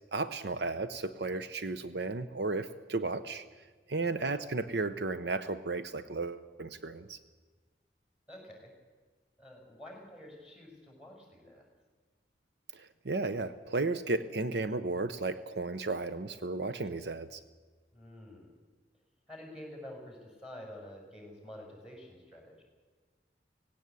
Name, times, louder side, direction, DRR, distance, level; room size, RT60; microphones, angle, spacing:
voice 1, 0.1-3.4 3.9-7.2 12.7-17.4, right 3 dB, 70° right, 12 dB, 0.8 m, -34 dB
voice 2, 4.0-4.4 8.3-8.7 9.4-11.7 17.9-18.5 19.3-22.6, left 1 dB, 5° right, 0 dB, 6.1 m, -49 dB
18.5 x 17.0 x 8.3 m, 1.4 s
head